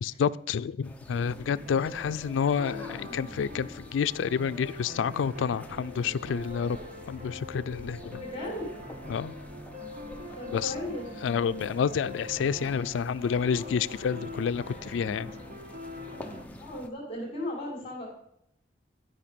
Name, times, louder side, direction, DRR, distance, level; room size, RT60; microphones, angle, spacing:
voice 1, 0.0-6.8 7.1-8.2 9.1-9.3 10.5-10.8 11.2-15.3, left 7 dB, 90° left, 15 dB, 0.3 m, -29 dB
sound 1, 0.8-16.9, equal, 10° left, 0.7 m, -46 dB
sound 2, 1.7-16.4, left 2 dB, 45° right, 1.4 m, -43 dB
voice 2, 8.2-8.7 10.4-11.1 16.6-18.1, left 1 dB, 30° left, -4 dB, 2.4 m, -36 dB
11.0 x 5.5 x 5.2 m, 0.75 s
head